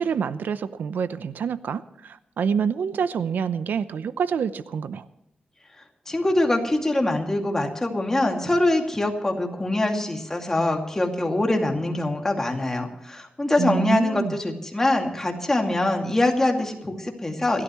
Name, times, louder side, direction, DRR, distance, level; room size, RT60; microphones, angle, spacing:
voice 1, 0.0-5.0 13.6-14.4, right 7 dB, 90° right, 13 dB, 0.7 m, -27 dB
voice 2, 6.1-17.6, left 1 dB, 15° left, 2 dB, 2.4 m, -24 dB
28.0 x 12.5 x 3.1 m, 0.86 s
wide cardioid pair, 145°, 3 cm